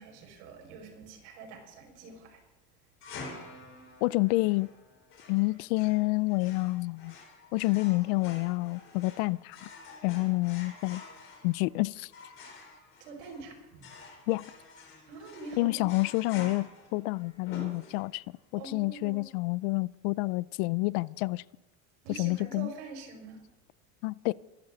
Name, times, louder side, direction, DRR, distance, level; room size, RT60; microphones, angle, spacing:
voice 1, 0.0-2.4 13.0-13.8 15.1-15.8 18.6-19.2 22.0-23.4, right 4 dB, 85° right, 5.6 m, -45 dB
sound 1, 3.0-18.4, left 3 dB, 35° left, 3.7 m, -49 dB
voice 2, 4.0-4.7 5.3-7.2 7.5-9.6 10.0-11.0 11.4-12.1 14.3-14.5 15.6-18.2 18.5-21.4 22.1-22.7 24.0-24.3, left 23 dB, 70° left, 0.5 m, -28 dB
24.5 x 11.5 x 3.9 m
cardioid pair, 170°, 34 cm